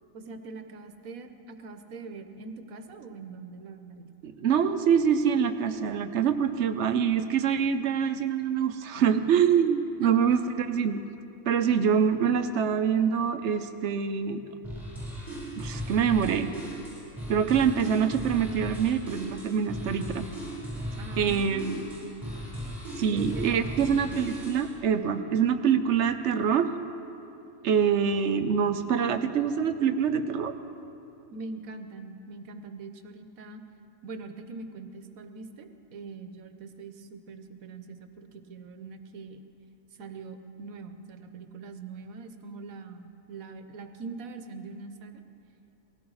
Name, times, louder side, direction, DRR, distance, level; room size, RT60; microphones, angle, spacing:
voice 1, 0.1-4.1 10.0-10.4 11.7-12.0 21.0-21.8 23.0-24.2 31.3-33.6 34.0-39.4 40.0-45.2, right 4 dB, 85° right, 8 dB, 1.3 m, -42 dB
voice 2, 4.2-11.0 11.5-14.4 15.6-16.5 17.3-20.3 21.2-21.8 23.0-26.7 27.6-30.5, right 7 dB, 60° right, 9 dB, 1.0 m, -25 dB
sound 1, 14.6-24.7, right 1 dB, ahead, 4.6 m, -37 dB
18.0 x 16.0 x 4.8 m, 2.7 s
omnidirectional pair, 1.4 m